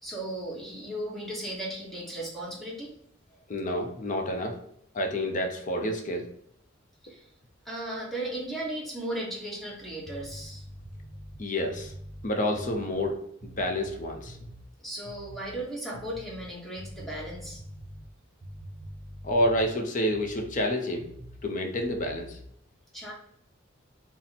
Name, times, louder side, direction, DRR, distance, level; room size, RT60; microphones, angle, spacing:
voice 1, 0.0-2.9 7.0-7.3 7.6-10.6 14.8-17.6 22.9-23.1, right 1 dB, ahead, -4 dB, 1.1 m, -36 dB
voice 2, 3.5-4.6 4.9-6.3 11.4-11.9 12.2-14.4 19.2-21.1 21.4-22.4, left 1 dB, 40° left, 4 dB, 0.6 m, -29 dB
sound 1, 9.7-14.7 15.0-15.6 15.9-20.6 21.0-21.5 21.8-22.5, equal, 40° right, 0.7 m, -45 dB
4.2 x 2.1 x 4.1 m, 0.69 s
head